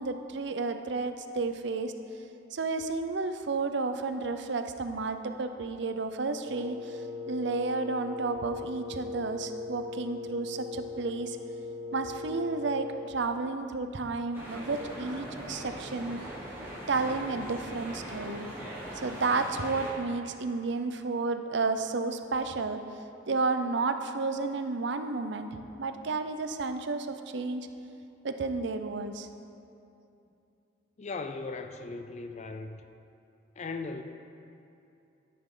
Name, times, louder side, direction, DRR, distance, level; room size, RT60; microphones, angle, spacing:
voice 1, 0.0-1.9 2.5-11.4 11.9-16.2 16.9-18.5 18.9-22.8 23.3-25.5 25.8-27.7 28.2-29.3, right 3 dB, 65° right, 8 dB, 0.6 m, -32 dB
Wind instrument woodwind instrument, 6.4-13.2, left 3 dB, 40° right, 1.1 m, -39 dB
sound 1, 14.3-19.9, right 1 dB, 15° right, 2.3 m, -40 dB
voice 2, 31.0-32.8 33.6-34.0, left 3 dB, 40° left, 7 dB, 0.5 m, -38 dB
13.0 x 9.4 x 3.8 m, 2.7 s
head